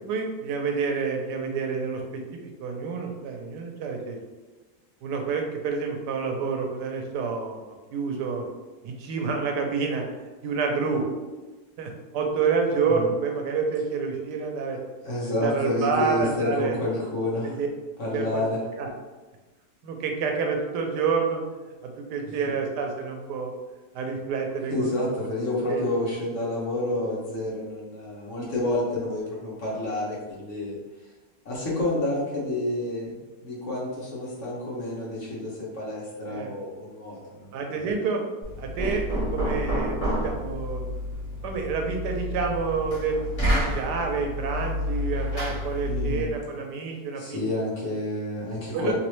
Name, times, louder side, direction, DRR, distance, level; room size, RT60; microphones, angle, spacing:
voice 1, 0.0-2.0 2.4-4.2 5.0-8.4 8.8-10.0 10.4-11.0 11.8-14.8 15.3-16.8 17.6-17.7 18.1-18.4 18.8-18.9 19.8-21.4 21.8-23.5 23.9-24.9 25.7-25.8 36.3-36.5 37.5-38.2 38.6-40.9 41.4-43.2 43.5-47.4 48.7-48.9, right 5 dB, 85° right, 2 dB, 1.2 m, -28 dB
voice 2, 14.7-17.5 18.0-18.6 24.7-30.7 31.4-37.5 45.8-46.3 47.2-48.9, left 1 dB, 55° left, -5 dB, 1.1 m, -29 dB
Knock, 38.4-46.3, equal, 25° left, 1.0 m, -29 dB
3.2 x 3.0 x 3.1 m, 1.2 s
omnidirectional pair, 1.8 m